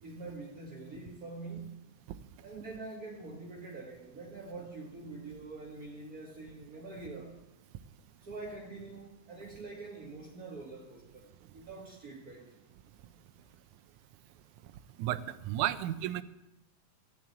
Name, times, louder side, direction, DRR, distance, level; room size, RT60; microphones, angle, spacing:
voice 1, 0.0-1.9 2.4-7.3 8.2-12.6, right 3 dB, 35° right, -1 dB, 1.7 m, -45 dB
voice 2, 15.0-16.2, right 13 dB, 85° right, 13 dB, 2.1 m, -32 dB
15.0 x 7.4 x 9.0 m, 0.95 s
omnidirectional pair, 3.5 m